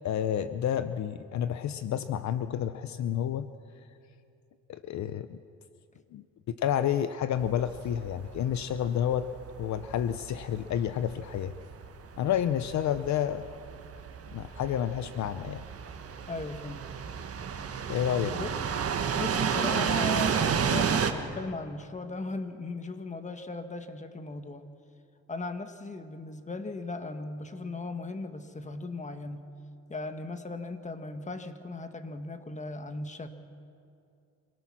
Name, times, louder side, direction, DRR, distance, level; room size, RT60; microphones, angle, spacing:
voice 1, 0.0-3.5 4.7-5.4 6.1-9.3 9.6-11.5 12.2-13.4 14.3-15.6 17.9-18.4, left 10 dB, 65° left, 12 dB, 0.8 m, -30 dB
sound 1, 7.4-21.1, right 7 dB, 50° right, 1.6 m, -32 dB
voice 2, 16.3-16.8 18.3-18.5 19.1-24.6 25.3-29.4 29.9-33.3, left 3 dB, 25° left, 8 dB, 1.6 m, -37 dB
27.0 x 18.5 x 6.2 m, 2.5 s
cardioid pair, 90°, 30 cm